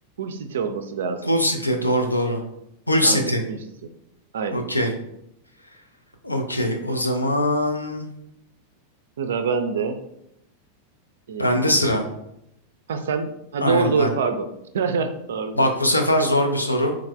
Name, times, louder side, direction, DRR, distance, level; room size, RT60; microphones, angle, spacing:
voice 1, 0.2-1.3 3.0-3.6 4.3-4.7 9.2-10.0 11.3-11.9 12.9-15.7, right 5 dB, 60° right, 8 dB, 0.3 m, -26 dB
voice 2, 1.3-2.4 2.9-3.4 4.5-4.9 6.2-8.1 11.4-12.0 13.6-14.1 15.6-17.0, left 1 dB, 85° left, 4 dB, 0.4 m, -21 dB
3.5 x 3.1 x 2.3 m, 0.79 s
figure-of-eight pair, 90°, 0 cm